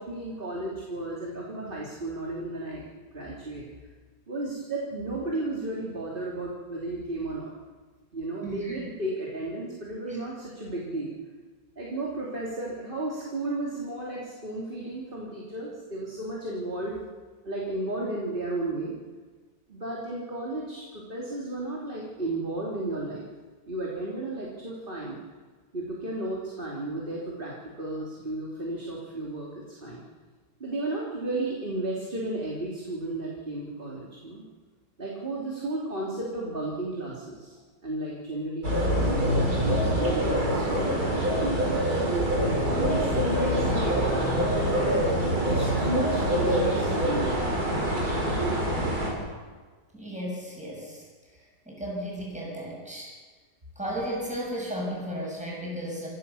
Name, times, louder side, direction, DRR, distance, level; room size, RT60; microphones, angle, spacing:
voice 1, 0.0-2.9 3.1-3.6 4.3-7.5 8.1-11.1 11.8-17.0 17.4-18.9 19.7-23.3 23.7-25.2 25.7-30.0 30.6-34.4 35.0-37.6 37.8-41.9 42.6-43.9 44.8-45.0 45.4-47.4, right 2 dB, 30° right, -4 dB, 3.3 m, -33 dB
voice 2, 8.4-8.9 10.1-10.2 49.9-51.0 51.7-53.1 53.8-56.1, equal, 5° right, -3 dB, 7.0 m, -34 dB
sound 1, 38.6-49.1, equal, 60° right, 5.6 m, -25 dB
27.5 x 16.0 x 7.1 m, 1.4 s
omnidirectional pair, 1.8 m